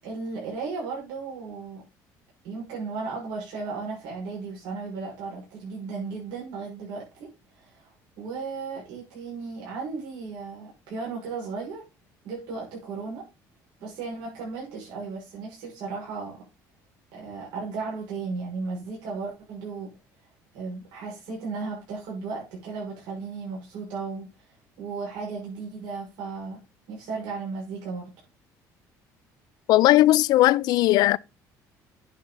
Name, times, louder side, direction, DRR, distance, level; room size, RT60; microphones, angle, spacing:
voice 1, 0.0-1.8 2.4-7.3 7.5-11.8 12.2-13.2 13.8-16.5 17.1-20.0 20.5-24.3 24.8-28.1, right 4 dB, 80° right, 6.2 m, -35 dB
voice 2, 29.7-31.2, left 16 dB, 70° left, 0.5 m, -18 dB
10.5 x 6.9 x 4.1 m
cardioid pair, 125°, 7 cm